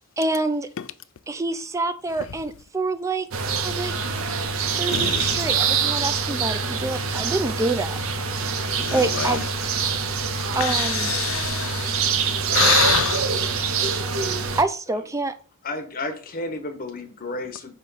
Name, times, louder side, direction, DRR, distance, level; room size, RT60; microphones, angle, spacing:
voice 1, 0.2-0.7 1.3-3.3 3.6-3.9 4.8-8.0 8.9-9.4 10.5-11.1 14.5-15.3, right 2 dB, 15° right, 0.4 m, -26 dB
sound 1, 3.3-14.6, right 5 dB, 65° right, 0.6 m, -25 dB
voice 2, 4.9-5.4 8.8-9.4 10.6-12.1 12.5-13.4, left 10 dB, 60° left, 0.4 m, -26 dB
voice 3, 15.6-17.7, left 2 dB, 40° left, 0.9 m, -32 dB
5.8 x 3.0 x 5.4 m
head